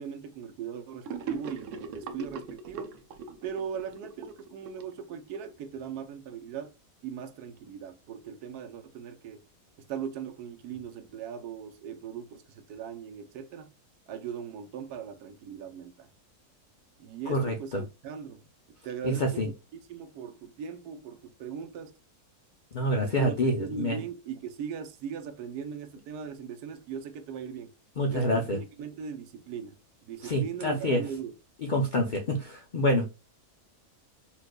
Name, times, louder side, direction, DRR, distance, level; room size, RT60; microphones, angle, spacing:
voice 1, 0.0-2.9 3.4-6.7 7.0-9.4 9.9-13.7 14.1-16.1 17.0-19.5 19.9-21.9 23.0-27.7 28.1-29.7 30.0-31.3 32.9-33.1, right 7 dB, 85° right, 1.2 m, -39 dB
Gurgling / Sink (filling or washing), 1.0-5.5, right 5 dB, 65° right, 0.8 m, -40 dB
voice 2, 17.3-17.8 19.0-19.5 22.7-24.0 28.0-28.6 30.2-31.0 31.6-33.1, equal, 75° left, 0.4 m, -27 dB
4.4 x 2.5 x 2.2 m
omnidirectional pair, 1.6 m